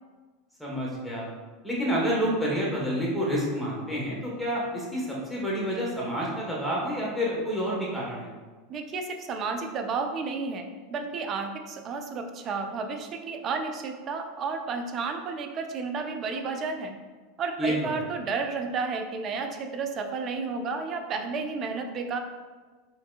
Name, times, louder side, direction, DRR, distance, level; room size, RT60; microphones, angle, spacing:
voice 1, 0.6-1.3 1.6-8.3 17.6-17.7, equal, ahead, -5 dB, 1.3 m, -28 dB
voice 2, 8.7-17.0 17.4-22.2, right 4 dB, 40° right, 5 dB, 0.4 m, -32 dB
4.4 x 2.7 x 2.4 m, 1.4 s
hypercardioid pair, 90°, 0 cm